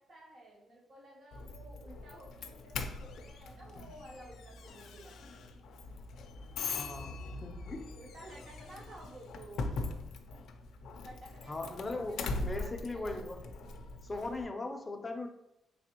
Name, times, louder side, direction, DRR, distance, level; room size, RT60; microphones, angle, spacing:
voice 1, 0.0-5.5 6.7-7.3 8.0-9.8 11.0-13.2, right 1 dB, 50° right, -3 dB, 0.8 m, -53 dB
Doorbell, 1.3-14.4, left 3 dB, 75° left, 0.4 m, -41 dB
voice 2, 6.7-7.1 7.4-7.9 11.5-13.5 14.0-15.3, left 2 dB, 20° left, 4 dB, 0.5 m, -39 dB
3.4 x 3.4 x 2.9 m, 0.87 s
cardioid pair, 125°, 0 cm